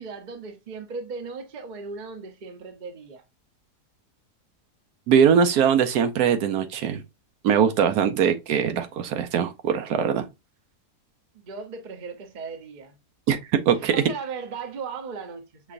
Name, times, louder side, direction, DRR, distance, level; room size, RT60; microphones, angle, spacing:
voice 1, 0.0-3.2 11.3-13.0 13.8-15.7, right 5 dB, 40° right, 0.7 m, -37 dB
voice 2, 5.1-7.0 7.4-10.3 13.3-13.4 13.7-14.0, right 7 dB, 80° right, 1.2 m, -21 dB
5.9 x 3.2 x 2.5 m
omnidirectional pair, 1.7 m